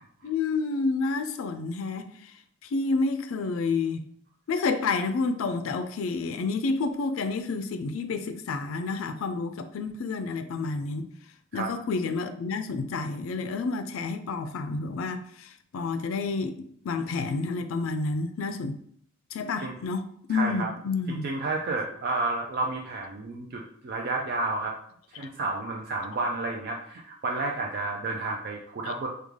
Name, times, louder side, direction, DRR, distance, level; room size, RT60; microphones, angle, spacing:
voice 1, 0.2-2.3 2.6-4.1 4.5-11.1 11.5-16.6 16.8-18.8 19.3-21.3 25.1-25.3 28.9-29.0, left 4 dB, 80° left, 0.4 m, -29 dB
voice 2, 20.3-20.7 21.2-24.8 25.1-29.1, right 3 dB, 50° right, 0.4 m, -31 dB
3.2 x 2.3 x 3.5 m
head